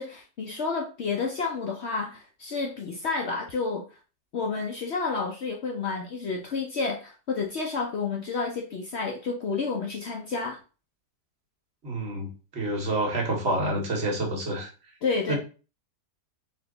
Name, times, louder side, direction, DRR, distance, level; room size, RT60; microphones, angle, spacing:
voice 1, 0.0-3.8 4.3-10.6 15.0-15.3, left 4 dB, 60° left, 1 dB, 0.7 m, -30 dB
voice 2, 11.8-14.7 15.3-15.4, right 1 dB, 40° right, 0 dB, 1.4 m, -28 dB
4.3 x 2.8 x 3.8 m, 0.34 s
omnidirectional pair, 1.8 m